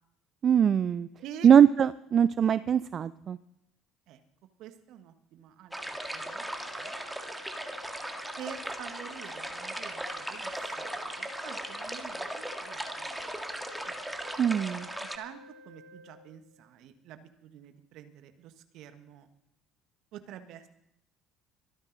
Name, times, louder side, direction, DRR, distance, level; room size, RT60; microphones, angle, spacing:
voice 1, 0.4-1.1 1.4-3.4 14.4-14.9, right 8 dB, 45° right, 16 dB, 0.4 m, -22 dB
voice 2, 4.6-6.9 8.4-13.3 13.9-14.3 15.0-19.3 20.1-20.7, right 9 dB, 60° right, 9 dB, 1.4 m, -48 dB
sound 1, 5.7-15.2, right 1 dB, 5° right, 1.8 m, -38 dB
Organ, 5.8-16.8, equal, 85° right, 1.2 m, -53 dB
24.0 x 9.7 x 4.0 m, 0.81 s
hypercardioid pair, 65°, 0 cm